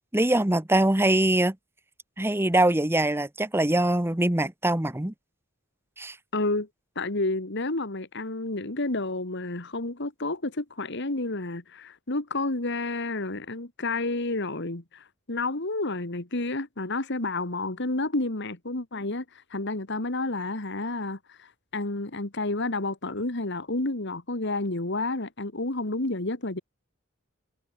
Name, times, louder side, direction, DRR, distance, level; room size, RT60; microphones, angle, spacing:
voice 1, 0.1-1.5 2.2-5.1 6.0-6.1, right 1 dB, 10° right, 1.0 m, -23 dB
voice 2, 6.3-6.7 7.0-19.2 19.5-26.6, left 2 dB, 60° left, 2.2 m, -30 dB
head